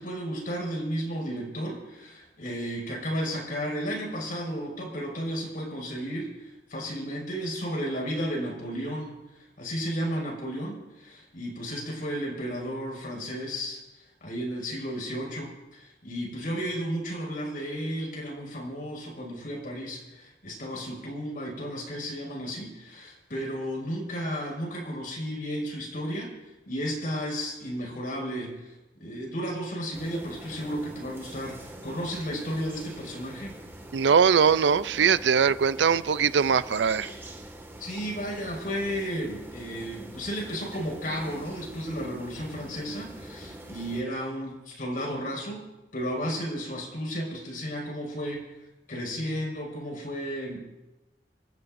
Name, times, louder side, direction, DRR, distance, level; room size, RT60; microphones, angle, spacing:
voice 1, 0.0-9.2 9.6-13.8 14.2-26.3 26.7-28.7 29.0-33.6 37.8-45.6 45.9-48.5 48.9-50.6, equal, 55° left, 5.9 m, -33 dB
sound 1, 29.9-44.0, right 1 dB, 15° right, 1.9 m, -44 dB
voice 2, 33.9-37.1, right 6 dB, 75° right, 0.4 m, -21 dB
27.0 x 14.5 x 2.6 m
head